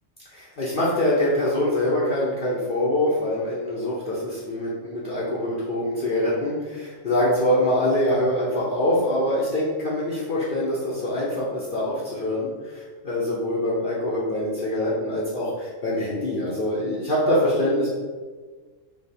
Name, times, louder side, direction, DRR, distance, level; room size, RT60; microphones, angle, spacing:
voice 1, 0.3-17.9, left 1 dB, 50° left, -7 dB, 0.8 m, -24 dB
3.3 x 2.9 x 4.3 m, 1.4 s
omnidirectional pair, 1.3 m